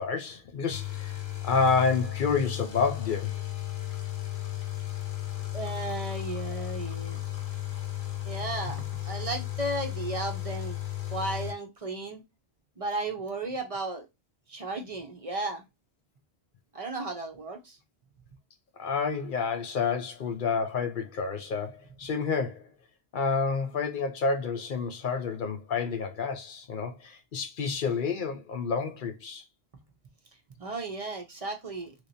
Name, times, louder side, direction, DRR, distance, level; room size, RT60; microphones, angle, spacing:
voice 1, 0.0-3.4 18.8-22.6 23.1-29.4, left 5 dB, 55° left, 0.7 m, -29 dB
sound 1, 0.7-11.5, left 14 dB, 75° left, 1.1 m, -35 dB
voice 2, 5.5-7.2 8.2-10.7 11.1-12.2 12.8-14.1 14.5-15.6 16.7-17.8 30.6-31.9, right 2 dB, 40° right, 0.6 m, -34 dB
3.3 x 2.9 x 2.6 m
omnidirectional pair, 1.1 m